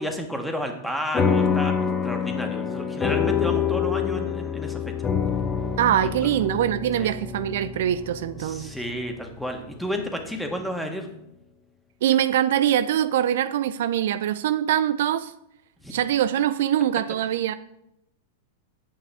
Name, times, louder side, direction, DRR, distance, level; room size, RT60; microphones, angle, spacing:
voice 1, 0.0-1.7 2.0-5.1 6.0-6.1 7.0-7.1 8.4-11.1 15.8-15.9, equal, ahead, 4 dB, 1.7 m, -31 dB
sound 1, 1.1-9.9, left 7 dB, 20° left, 0.9 m, -26 dB
voice 2, 5.8-8.7 12.0-15.3 15.9-17.5, right 11 dB, 60° right, 12 dB, 0.5 m, -23 dB
8.6 x 8.3 x 3.5 m, 0.82 s
figure-of-eight pair, 100°, 0 cm